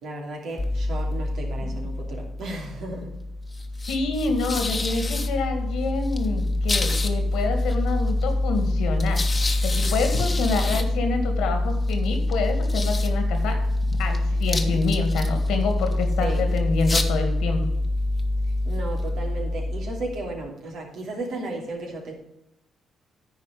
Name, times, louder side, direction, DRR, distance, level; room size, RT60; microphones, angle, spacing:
voice 1, 0.0-3.1 16.2-16.5 18.6-22.1, right 2 dB, 75° right, 0 dB, 2.8 m, -34 dB
sound 1, 0.6-20.5, left 1 dB, 30° left, 1.2 m, -25 dB
voice 2, 3.9-9.2 9.6-13.6 14.0-17.6, left 4 dB, 85° left, 5 dB, 2.0 m, -27 dB
10.0 x 4.6 x 7.7 m, 0.85 s
cardioid pair, 70°, 0 cm